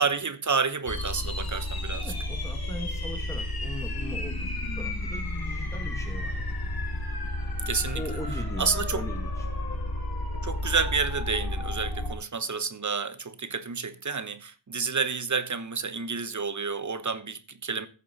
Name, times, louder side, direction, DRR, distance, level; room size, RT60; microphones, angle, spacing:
voice 1, 0.0-2.1 7.7-8.0 8.6-9.0 10.4-17.9, right 5 dB, 45° right, 1.1 m, -29 dB
sound 1, 0.9-12.1, left 1 dB, 55° left, 3.0 m, -32 dB
voice 2, 1.9-6.6 7.4-7.6 7.9-9.7, left 1 dB, 5° left, 1.9 m, -40 dB
14.5 x 7.4 x 4.2 m
wide cardioid pair, 85°, 42 cm